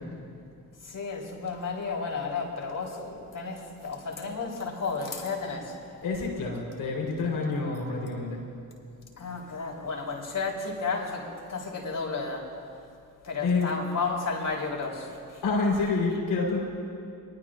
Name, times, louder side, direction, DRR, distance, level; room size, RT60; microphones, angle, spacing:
voice 1, 0.8-5.8 9.2-12.5 13.2-15.4, left 4 dB, 55° left, -1 dB, 3.9 m, -33 dB
voice 2, 6.0-8.5 13.4-13.7 15.4-16.6, left 4 dB, 85° left, -1 dB, 4.1 m, -28 dB
23.0 x 21.0 x 2.5 m, 2.4 s
supercardioid pair, 50°, 37 cm